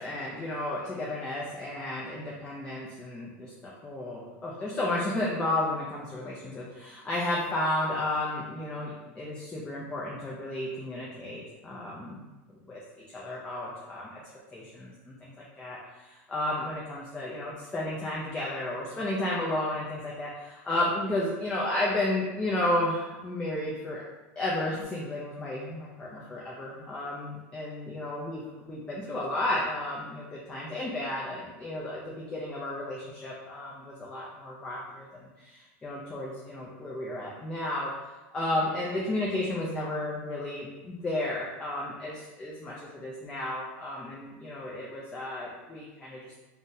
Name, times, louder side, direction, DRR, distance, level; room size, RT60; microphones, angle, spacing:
voice 1, 0.0-12.2 12.7-12.8 13.1-14.2 14.5-24.0 24.4-46.4, left 1 dB, 15° left, -4 dB, 0.4 m, -33 dB
3.7 x 2.1 x 2.6 m, 1.1 s
supercardioid pair, 140°, 7 cm